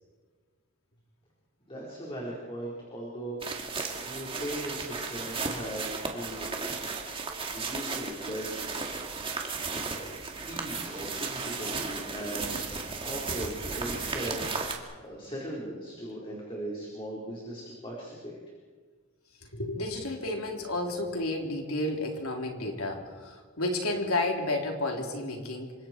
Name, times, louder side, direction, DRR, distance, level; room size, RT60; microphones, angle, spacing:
voice 1, 1.7-3.4 4.0-6.5 7.3-9.0 9.9-18.4, right 1 dB, 25° left, -4 dB, 4.4 m, -39 dB
sound 1, 3.4-14.8, right 4 dB, 25° right, 2.2 m, -35 dB
voice 2, 19.4-25.7, left 2 dB, 85° left, 1 dB, 3.6 m, -31 dB
27.0 x 25.5 x 4.6 m, 1.5 s
head